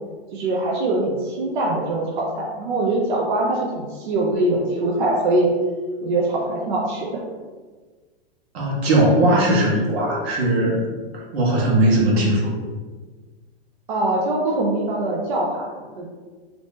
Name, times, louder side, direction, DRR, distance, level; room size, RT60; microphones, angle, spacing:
voice 1, 0.3-5.5 6.0-7.2 13.9-16.1, right 2 dB, 50° right, -3 dB, 0.5 m, -23 dB
voice 2, 8.5-10.8 11.1-12.5, right 1 dB, 80° right, -3 dB, 1.2 m, -19 dB
2.9 x 2.7 x 3.4 m, 1.4 s
supercardioid pair, 175°, 31 cm